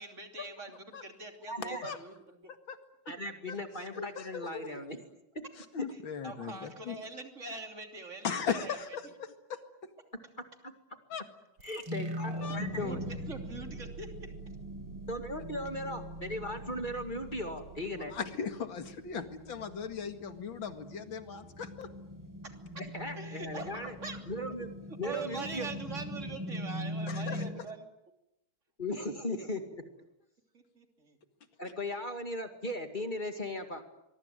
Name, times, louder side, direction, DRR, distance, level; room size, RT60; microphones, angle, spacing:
voice 1, 0.0-2.5 5.9-8.8 12.7-14.3 22.4-22.5 23.2-24.2 25.0-27.9 30.5-31.2, right 3 dB, 35° right, 4 dB, 3.4 m, -43 dB
voice 2, 1.5-1.9 3.1-5.0 11.6-13.0 15.1-18.1 22.8-23.9 24.3-24.7 25.0-25.7 28.8-29.8 31.6-33.8, left 1 dB, 25° left, 6 dB, 2.4 m, -37 dB
voice 3, 3.9-4.6 5.7-7.0 8.2-9.6 11.1-11.2 12.4-12.6 17.9-21.9 27.1-27.4, left 6 dB, 65° left, 8 dB, 2.7 m, -38 dB
sound 1, 11.6-18.9, right 3 dB, 80° right, 5.2 m, -48 dB
sound 2, 11.9-27.5, equal, 10° right, 3.7 m, -42 dB
24.5 x 23.0 x 9.3 m, 0.88 s
omnidirectional pair, 2.3 m